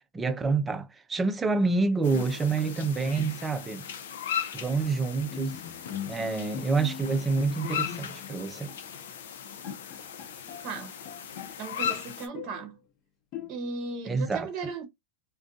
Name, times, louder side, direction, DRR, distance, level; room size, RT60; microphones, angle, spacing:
voice 1, 0.1-3.9 4.5-5.6 6.1-8.7 14.1-14.5, right 4 dB, 15° right, 0.5 m, -27 dB
sound 1, 2.0-12.3, left 9 dB, 80° left, 0.6 m, -37 dB
Bowed string instrument, 5.3-8.4 8.7-8.9 9.3-9.4 9.6-11.5 11.8-12.7 13.3-13.9, left 7 dB, 40° left, 0.8 m, -41 dB
voice 2, 11.6-12.8 13.5-14.8, right 4 dB, 40° right, 0.8 m, -36 dB
2.5 x 2.2 x 2.5 m
hypercardioid pair, 125°, 0 cm